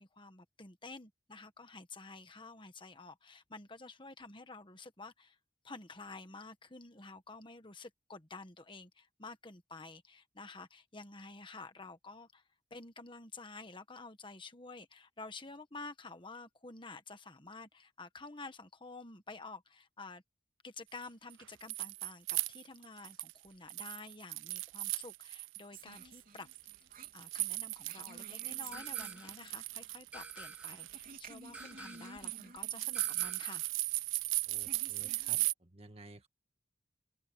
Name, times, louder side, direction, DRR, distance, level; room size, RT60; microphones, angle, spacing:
voice 1, 0.0-5.4 5.6-12.4 12.7-20.2 20.6-26.5 27.1-33.6, left 3 dB, 25° left, 1.4 m, -50 dB
sound 1, 21.3-23.4 23.7-25.6 25.9-35.5, right 23 dB, 85° right, 0.3 m, -37 dB
sound 2, 25.7-35.5, right 3 dB, 50° right, 3.7 m, -55 dB
sound 3, 28.7-29.5 30.1-30.9 31.5-32.3 32.9-33.7, right 2 dB, 5° right, 1.9 m, -50 dB
voice 2, 34.5-36.3, right 2 dB, 30° right, 1.9 m, -54 dB
head